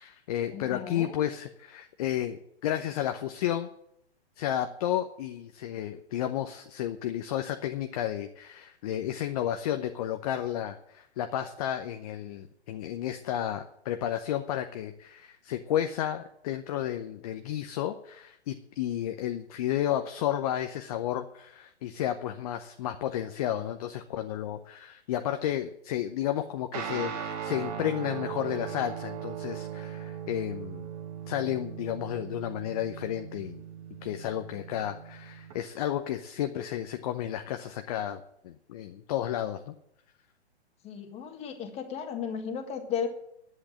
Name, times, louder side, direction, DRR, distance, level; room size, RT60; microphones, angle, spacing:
voice 1, 0.0-3.7 4.4-30.9 31.3-33.6 34.0-39.7, left 11 dB, 35° left, 7 dB, 0.8 m, -32 dB
voice 2, 0.5-1.1 40.8-43.1, left 7 dB, 20° left, 5 dB, 1.7 m, -35 dB
Guitar, 26.7-35.5, right 8 dB, 35° right, 1.9 m, -39 dB
10.5 x 8.0 x 8.7 m, 0.76 s
hypercardioid pair, 135°, 33 cm